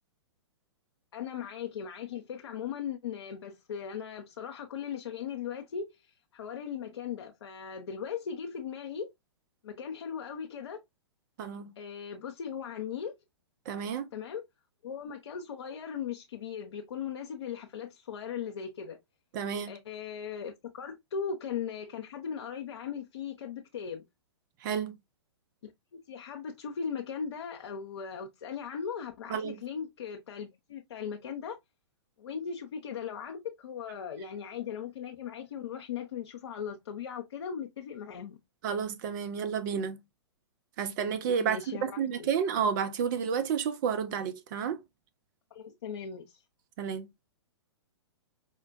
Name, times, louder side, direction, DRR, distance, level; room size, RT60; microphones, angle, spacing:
voice 1, 1.1-9.1 9.6-10.8 11.8-13.2 14.1-14.4 14.8-19.0 19.7-24.0 25.6-25.7 26.1-31.6 32.2-38.4 41.4-42.3 45.5-46.4, left 7 dB, 65° left, 0.6 m, -38 dB
voice 2, 11.4-11.7 13.7-14.1 19.3-19.7 24.6-25.0 29.3-29.6 38.6-40.0 40.8-44.8 46.8-47.1, right 7 dB, 40° right, 0.5 m, -31 dB
5.0 x 2.2 x 2.5 m
figure-of-eight pair, 115°, 15 cm